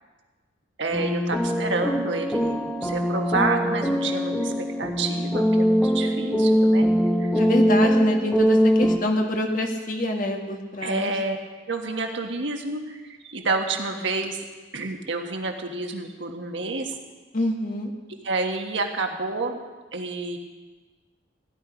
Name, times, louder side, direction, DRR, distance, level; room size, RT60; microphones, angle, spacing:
voice 1, 0.8-6.9 7.2-7.3 10.8-11.4 11.7-14.4 14.7-17.0 18.2-19.6 19.9-20.4, right 3 dB, 75° right, 3 dB, 1.5 m, -29 dB
sound 1, 0.9-9.0, equal, 5° left, 0.9 m, -22 dB
voice 2, 7.3-11.1 17.3-17.9, left 1 dB, 45° left, 2 dB, 1.6 m, -26 dB
16.5 x 11.0 x 5.2 m, 1.3 s
head